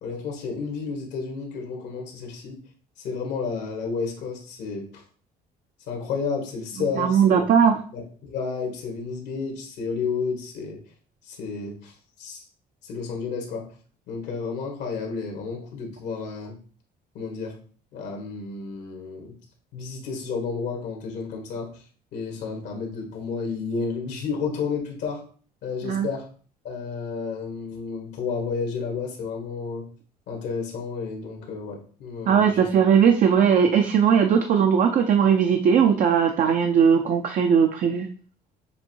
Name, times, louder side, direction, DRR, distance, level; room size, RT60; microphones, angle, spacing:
voice 1, 0.0-2.6 3.0-5.0 5.9-7.4 7.9-10.8 11.2-12.4 12.8-13.7 14.1-16.6 17.1-17.5 17.9-19.3 19.7-21.8 22.1-25.2 25.6-26.3 26.6-29.9 30.3-32.7, left 5 dB, 80° left, 0 dB, 1.5 m, -31 dB
voice 2, 7.0-7.8 25.8-26.1 32.3-38.1, right 7 dB, 50° right, 5 dB, 0.5 m, -19 dB
7.1 x 2.6 x 2.8 m, 0.43 s
cardioid pair, 110°, 17 cm